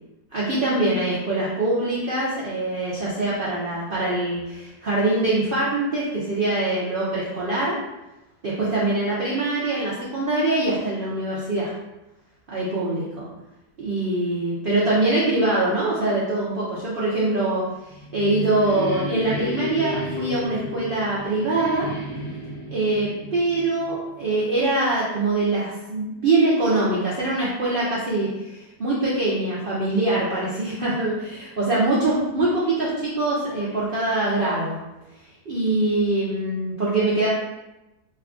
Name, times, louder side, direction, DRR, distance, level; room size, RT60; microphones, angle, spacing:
voice 1, 0.3-7.8 8.4-11.7 12.5-13.3 13.8-21.9 22.7-34.8 35.5-37.3, right 2 dB, 85° right, -7 dB, 0.4 m, -23 dB
sound 1, 17.7-24.4, left 1 dB, 85° left, 1.4 m, -33 dB
3.2 x 2.3 x 3.6 m, 0.98 s
omnidirectional pair, 1.8 m